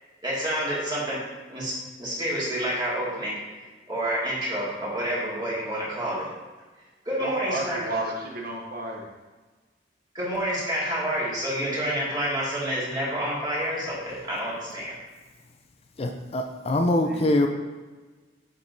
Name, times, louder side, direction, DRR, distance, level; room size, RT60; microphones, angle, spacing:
voice 1, 0.2-1.2 1.5-1.7 2.0-3.3 3.9-6.2 7.1-7.8 10.1-14.9, equal, 25° right, -7 dB, 2.1 m, -28 dB
voice 2, 7.2-9.1 17.0-17.4, right 1 dB, 55° right, -1 dB, 0.8 m, -32 dB
voice 3, 16.0-17.5, left 1 dB, 35° left, 4 dB, 0.4 m, -23 dB
7.2 x 6.0 x 2.7 m, 1.3 s
head